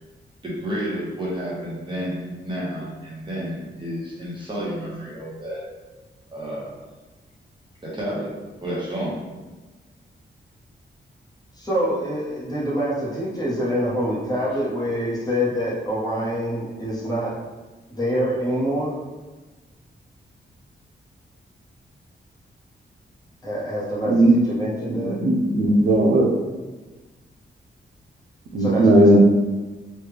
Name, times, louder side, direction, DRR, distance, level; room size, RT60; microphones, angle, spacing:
voice 1, 0.4-5.6 6.3-6.7 7.8-9.2, equal, 25° right, -6 dB, 1.0 m, -30 dB
voice 2, 11.5-17.3 17.9-18.9 23.4-25.1 28.6-29.2, equal, 20° left, -7 dB, 0.9 m, -25 dB
voice 3, 24.9-26.3 28.5-29.2, right 1 dB, 80° right, 1 dB, 0.6 m, -17 dB
3.2 x 2.3 x 3.5 m, 1.2 s
wide cardioid pair, 140°, 19 cm